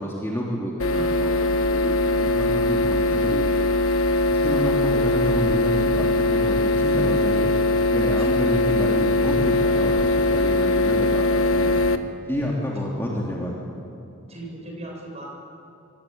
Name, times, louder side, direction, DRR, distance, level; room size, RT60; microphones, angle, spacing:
voice 1, 0.0-3.6 4.3-7.5 7.9-11.8 12.3-13.6, equal, 10° left, -4 dB, 3.2 m, -29 dB
sound 1, 0.8-12.0, left 2 dB, 70° left, 1.3 m, -21 dB
voice 2, 14.3-15.3, right 1 dB, 30° right, -1 dB, 7.6 m, -38 dB
27.0 x 24.0 x 8.9 m, 2.5 s
head